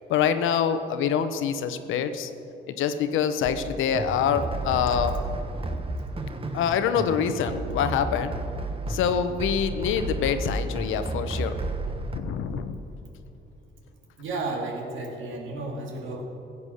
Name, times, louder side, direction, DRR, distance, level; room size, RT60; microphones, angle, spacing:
voice 1, 0.1-2.3 2.7-5.1 6.5-8.3 8.9-11.6 12.1-12.8, left 8 dB, 85° left, 10 dB, 0.9 m, -25 dB
sound 1, 3.5-12.2, right 2 dB, 30° right, 1.1 m, -32 dB
voice 2, 14.2-16.2, right 2 dB, 75° right, 0 dB, 2.5 m, -32 dB
15.5 x 8.4 x 6.4 m, 2.7 s
cardioid pair, 90°, 20 cm